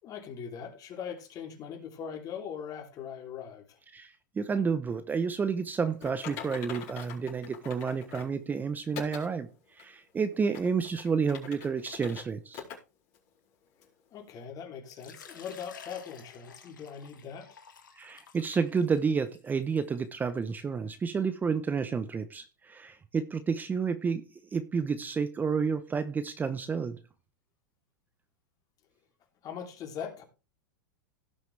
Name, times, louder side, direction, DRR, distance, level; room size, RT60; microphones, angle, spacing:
voice 1, 0.0-3.8 7.8-7.9 14.1-17.6 29.4-30.2, left 7 dB, 35° left, 3.1 m, -41 dB
voice 2, 3.9-12.6 18.0-27.0, right 5 dB, 15° right, 0.8 m, -30 dB
Typing, 6.0-8.4 8.9-9.3 9.8-9.9 10.4-12.2 12.5-12.8 13.1-13.2 13.8-13.9, left 7 dB, 55° left, 4.4 m, -43 dB
Water / Liquid, 14.9-20.4, left 7 dB, 90° left, 2.3 m, -52 dB
17.0 x 6.3 x 3.3 m
hypercardioid pair, 115°, 10 cm